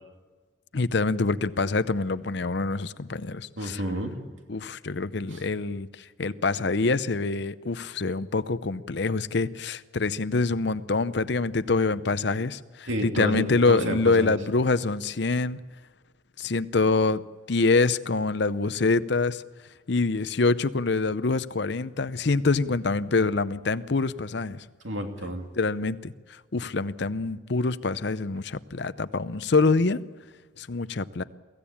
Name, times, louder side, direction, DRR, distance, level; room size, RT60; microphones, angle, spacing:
voice 1, 0.7-3.8 4.5-5.9 6.2-15.6 16.4-17.2 17.5-19.4 19.9-24.6 25.6-30.0 30.6-31.2, left 3 dB, 55° left, 14 dB, 0.7 m, -25 dB
voice 2, 3.6-4.2 5.3-5.4 12.9-14.4 24.8-25.5, equal, 70° right, 3 dB, 2.7 m, -30 dB
23.5 x 15.5 x 8.7 m, 1.4 s
head